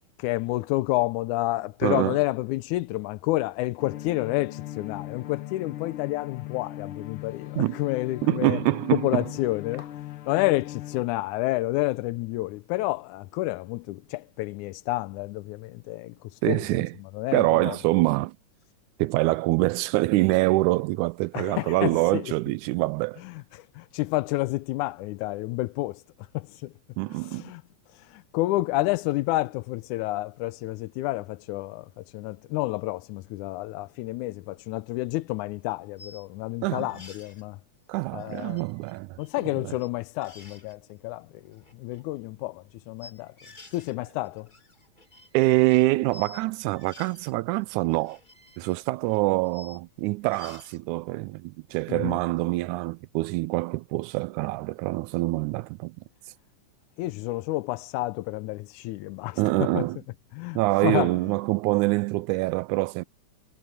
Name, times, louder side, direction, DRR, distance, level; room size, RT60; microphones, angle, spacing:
voice 1, 0.2-8.6 8.9-16.7 17.0-17.8 21.3-22.3 23.2-26.0 26.3-26.7 27.1-27.6 27.9-37.6 38.1-38.6 39.2-43.3 43.7-44.5 51.9-52.2 57.0-59.8 60.3-61.1, left 19 dB, 90° left, 2.0 m, -30 dB
voice 2, 1.8-2.2 7.6-7.8 8.2-9.2 16.4-16.9 17.3-18.3 19.0-23.2 27.0-27.5 36.6-36.9 37.9-39.2 39.6-39.7 45.3-48.2 48.6-55.9 59.4-60.0 60.6-63.0, right 20 dB, 90° right, 2.0 m, -25 dB
sound 1, 3.8-11.0, left 13 dB, 65° left, 1.3 m, -39 dB
sound 2, 35.4-35.5 36.0-36.3 36.8-37.5 38.2-39.5 39.7-39.9 40.2-40.8 41.5-42.0 43.0-43.9 44.3-46.4 46.7-47.3 47.8-49.8 50.2-50.8, left 3 dB, 15° left, 2.0 m, -51 dB
omnidirectional pair, 3.4 m